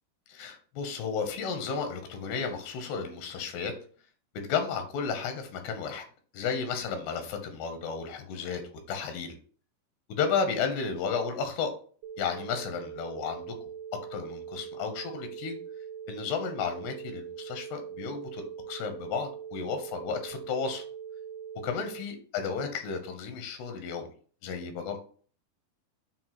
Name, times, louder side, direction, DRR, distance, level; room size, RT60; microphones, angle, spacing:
voice 1, 0.3-3.7 4.3-6.0 6.3-8.6 8.9-9.4 10.1-11.7 12.2-13.4 14.1-15.6 16.1-20.8 21.6-24.1 24.4-25.0, left 5 dB, 85° left, 6 dB, 3.2 m, -33 dB
sound 1, 12.0-22.0, right 8 dB, 80° right, 2.3 m, -42 dB
7.3 x 2.5 x 5.8 m, 0.44 s
omnidirectional pair, 4.6 m